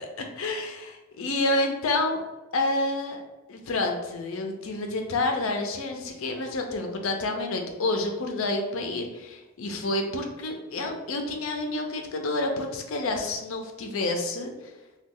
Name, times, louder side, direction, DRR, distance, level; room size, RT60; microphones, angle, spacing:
voice 1, 0.0-2.2 2.5-3.2 3.5-14.5, left 2 dB, 75° left, 3 dB, 0.5 m, -29 dB
3.0 x 2.3 x 3.6 m, 1.1 s
head